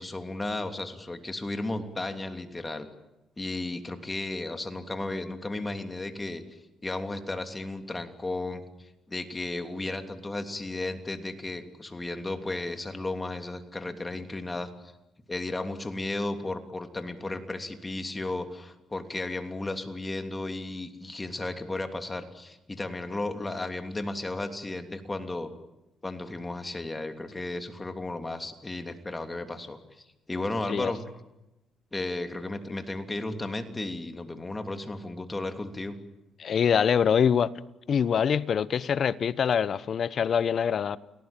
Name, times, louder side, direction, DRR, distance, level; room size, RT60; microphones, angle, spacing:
voice 1, 0.0-2.9 3.4-6.4 6.8-8.6 9.1-14.7 15.3-25.5 26.0-29.8 30.3-31.0 31.9-36.0, left 2 dB, 20° left, 3.1 m, -34 dB
voice 2, 36.4-37.5 37.9-41.0, left 7 dB, 55° left, 1.0 m, -24 dB
29.5 x 19.0 x 9.1 m
cardioid pair, 90°, 0 cm